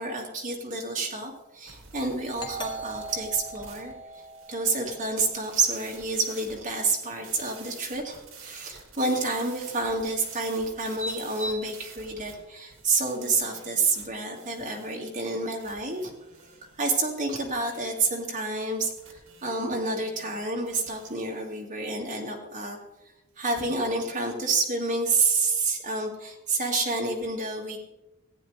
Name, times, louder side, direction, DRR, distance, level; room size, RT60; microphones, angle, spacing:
voice 1, 0.0-4.2 4.5-16.1 16.8-22.8 23.4-27.8, right 3 dB, 35° right, 0 dB, 2.0 m, -29 dB
sound 1, 1.7-21.1, right 5 dB, 65° right, 2.1 m, -50 dB
Doorbell, 2.4-5.7, right 2 dB, 20° left, 1.5 m, -40 dB
15.0 x 9.4 x 3.3 m, 1.0 s
head